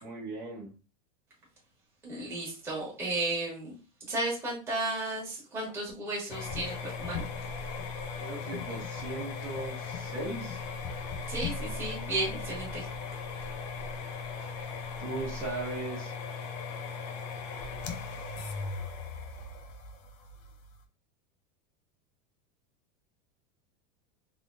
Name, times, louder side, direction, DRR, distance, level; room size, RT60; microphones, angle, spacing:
voice 1, 0.0-0.7 8.2-10.6 15.0-16.1, right 2 dB, 40° right, -3 dB, 1.0 m, -38 dB
voice 2, 2.0-3.7 4.1-7.2 11.3-12.9, right 2 dB, 10° right, -5 dB, 1.3 m, -34 dB
sound 1, 6.3-20.8, left 4 dB, 30° left, 0.4 m, -38 dB
3.4 x 2.8 x 2.6 m, 0.33 s
supercardioid pair, 170°, 21 cm